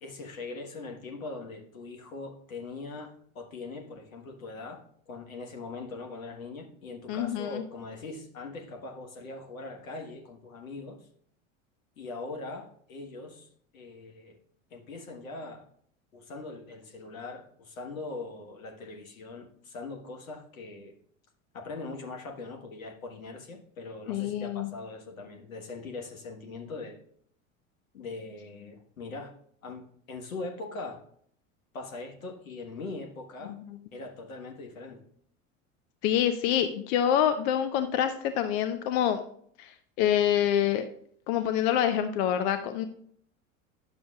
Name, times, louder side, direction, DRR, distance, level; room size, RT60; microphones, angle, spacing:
voice 1, 0.0-11.0 12.0-13.5 13.7-14.4 14.7-15.6 16.1-20.9 21.5-27.0 27.9-29.3 29.6-31.0 31.7-33.6 33.9-35.0, left 3 dB, 80° left, 3 dB, 1.4 m, -41 dB
voice 2, 7.1-7.6 24.1-24.7 33.5-33.6 36.0-39.2 39.6-40.9 41.3-42.8, left 10 dB, 55° left, 9 dB, 0.7 m, -26 dB
10.5 x 7.0 x 2.3 m, 0.62 s
figure-of-eight pair, 75°, 41 cm